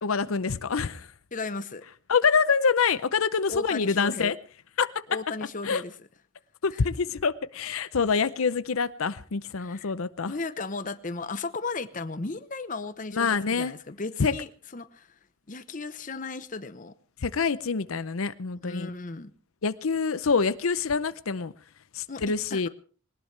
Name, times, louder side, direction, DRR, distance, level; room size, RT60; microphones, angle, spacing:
voice 1, 0.0-1.1 2.1-4.4 4.8-5.0 5.6-5.8 6.6-10.3 13.1-13.7 14.2-14.3 17.2-18.9 19.6-21.5 21.9-22.7, left 5 dB, 80° left, 0.7 m, -26 dB
voice 2, 1.3-1.8 3.5-4.3 5.1-5.9 6.7-6.8 9.6-9.9 10.3-15.2 15.5-16.9 18.6-19.3 22.1-22.7, left 3 dB, 40° left, 0.9 m, -35 dB
20.5 x 19.0 x 3.3 m
head